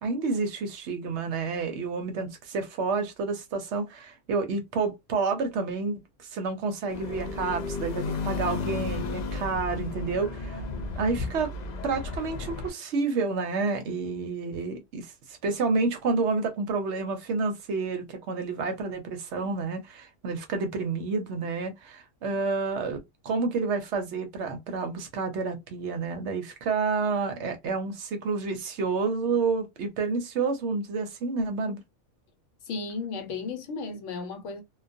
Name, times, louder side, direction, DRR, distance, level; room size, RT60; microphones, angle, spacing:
voice 1, 0.0-10.6 11.0-11.5 11.8-31.8, right 4 dB, 65° right, 0.8 m, -29 dB
sound 1, 6.9-12.7, left 3 dB, 85° left, 0.3 m, -33 dB
voice 2, 32.7-34.6, left 4 dB, 70° left, 0.9 m, -34 dB
2.3 x 2.2 x 2.5 m
omnidirectional pair, 1.3 m